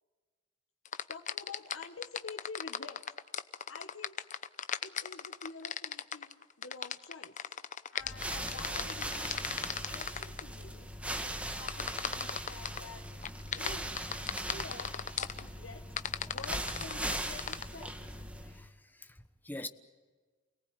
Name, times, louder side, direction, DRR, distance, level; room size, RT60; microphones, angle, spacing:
sound 1, 0.9-10.4 11.7-12.8 13.2-15.4 16.0-17.6, left 8 dB, 40° left, 0.8 m, -37 dB
voice 1, 1.1-3.0 3.7-4.1 4.8-7.3 7.9-10.9 11.1-13.0 13.5-14.0 14.5-15.9 16.2-18.0, left 4 dB, 85° left, 1.4 m, -48 dB
sound 2, 8.0-18.7, right 1 dB, 5° right, 1.9 m, -39 dB
voice 2, 18.4-19.7, left 2 dB, 10° left, 1.1 m, -45 dB
29.0 x 19.0 x 9.7 m
head